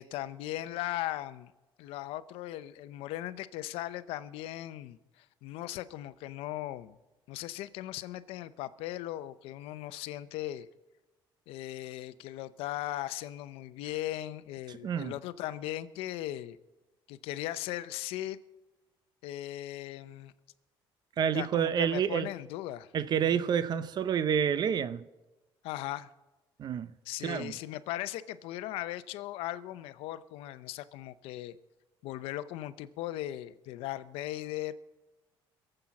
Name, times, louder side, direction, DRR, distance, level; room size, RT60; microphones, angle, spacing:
voice 1, 0.0-1.5 1.8-6.9 7.3-10.7 11.5-16.6 17.1-18.4 19.2-20.3 21.3-22.9 23.2-23.5 25.6-26.1 27.1-31.6 32.0-34.7, left 14 dB, 85° left, 0.6 m, -38 dB
voice 2, 14.7-15.1 21.2-22.3 22.9-25.0 26.6-26.9 27.2-27.6, right 8 dB, 50° right, 0.7 m, -29 dB
22.0 x 7.8 x 5.9 m
cardioid pair, 110°, 9 cm